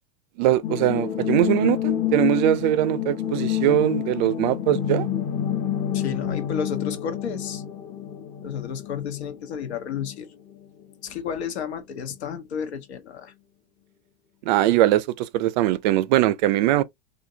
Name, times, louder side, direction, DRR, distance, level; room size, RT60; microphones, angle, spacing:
voice 1, 0.4-5.1 14.4-16.8, right 14 dB, 45° right, 0.4 m, -21 dB
sound 1, 0.6-10.2 10.5-10.6, left 10 dB, 20° left, 0.6 m, -28 dB
voice 2, 5.9-7.6 8.4-10.3 11.0-13.3, left 7 dB, 85° left, 1.4 m, -32 dB
4.4 x 2.7 x 2.7 m
supercardioid pair, 155°, 32 cm